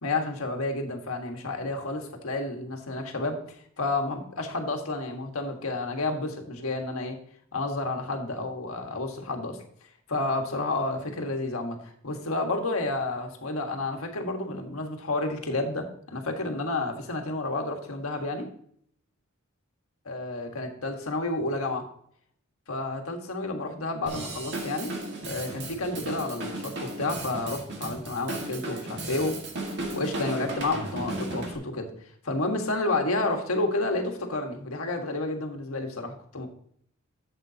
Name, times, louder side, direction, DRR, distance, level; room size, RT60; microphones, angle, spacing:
voice 1, 0.0-3.4 3.8-7.2 7.5-9.6 10.1-18.5 20.1-21.9 22.7-24.9 25.3-29.4 29.9-31.9 32.2-36.5, left 2 dB, 70° left, 3 dB, 1.6 m, -30 dB
Drum kit / Drum, 24.1-31.6, right 2 dB, 55° right, 1.9 m, -35 dB
12.0 x 7.8 x 2.8 m, 0.64 s
head